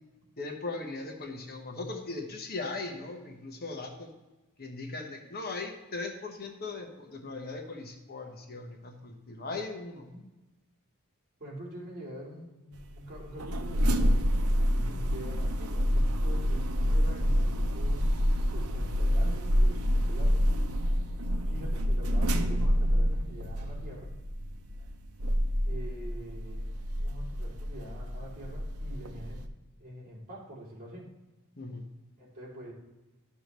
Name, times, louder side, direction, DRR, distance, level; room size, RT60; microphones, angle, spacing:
voice 1, 0.4-4.1 4.6-10.1 14.7-15.0 31.6-31.8, left 3 dB, 45° left, 3 dB, 1.1 m, -39 dB
voice 2, 11.4-14.2 15.0-20.4 21.4-24.1 25.6-29.4 29.8-31.1 32.2-32.7, equal, 40° right, -5 dB, 2.9 m, -45 dB
sound 1, 12.7-29.5, equal, 80° right, 0.7 m, -28 dB
12.0 x 6.7 x 3.1 m, 1.1 s
head